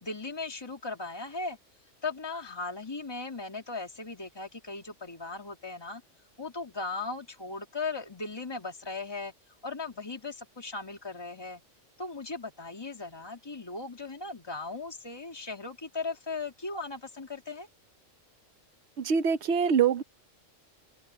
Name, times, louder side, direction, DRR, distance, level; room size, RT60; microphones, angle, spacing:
voice 1, 0.0-1.6 2.0-6.0 6.4-9.3 9.6-11.6 12.0-17.7, left 3 dB, 20° left, 2.2 m, -37 dB
voice 2, 19.0-20.0, right 7 dB, 60° right, 1.2 m, -24 dB
open air
omnidirectional pair, 1.3 m